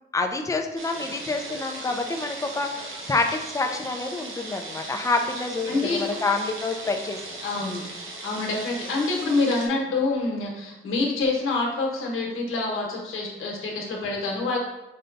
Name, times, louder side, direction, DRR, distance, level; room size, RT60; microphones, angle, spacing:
voice 1, 0.1-7.2, left 3 dB, 15° left, 4 dB, 0.4 m, -27 dB
sound 1, 0.8-9.7, right 2 dB, 75° right, 0.9 m, -38 dB
voice 2, 5.7-6.0 7.4-7.8 8.2-14.6, left 3 dB, 85° left, -1 dB, 1.1 m, -26 dB
5.3 x 2.2 x 3.8 m, 1.0 s
wide cardioid pair, 150°, 21 cm